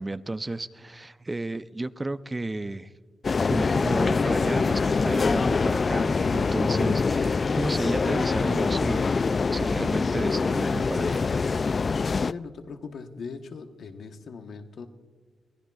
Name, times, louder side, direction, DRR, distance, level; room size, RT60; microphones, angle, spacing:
voice 1, 0.0-2.9 3.5-11.3, right 2 dB, 25° right, 13 dB, 0.5 m, -32 dB
sound 1, 3.2-12.3, left 4 dB, 45° left, 0.3 m, -24 dB
voice 2, 12.2-14.9, left 5 dB, 75° left, 6 dB, 1.1 m, -39 dB
22.5 x 16.0 x 2.4 m, 1.6 s
cardioid pair, 65°, 0 cm